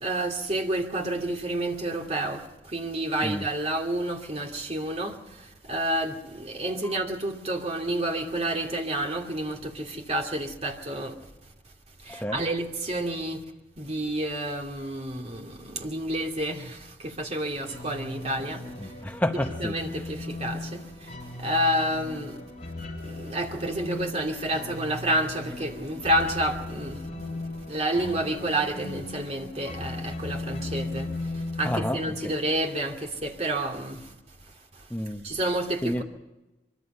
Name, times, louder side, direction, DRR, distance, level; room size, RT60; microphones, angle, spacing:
voice 1, 0.0-2.4 2.7-5.1 5.7-11.1 12.1-13.4 13.8-16.8 17.0-18.6 19.6-20.8 21.4-22.3 23.2-27.0 27.7-31.1 31.6-34.0 35.2-36.0, right 1 dB, 35° right, 2.5 m, -29 dB
voice 2, 6.6-7.1 12.1-12.5 18.8-20.1 31.6-32.3 34.9-35.3 35.8-36.0, left 1 dB, 10° left, 0.9 m, -31 dB
sound 1, 17.6-33.1, left 2 dB, 35° left, 6.3 m, -37 dB
24.0 x 24.0 x 5.5 m
head